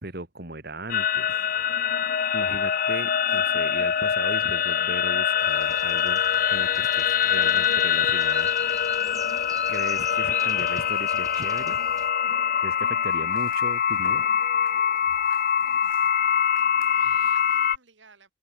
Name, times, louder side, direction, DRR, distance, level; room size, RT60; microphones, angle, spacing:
voice 1, 0.0-1.4 2.3-6.2 6.5-8.5 9.7-11.8 12.6-14.2, right 2 dB, 55° right, 2.3 m, -37 dB
sound 1, 0.9-17.8, left 8 dB, 45° left, 0.5 m, -24 dB
sound 2, 5.4-12.1, right 4 dB, 20° right, 3.1 m, -46 dB
voice 2, 15.6-16.2 16.6-18.3, right 5 dB, 75° right, 3.2 m, -57 dB
head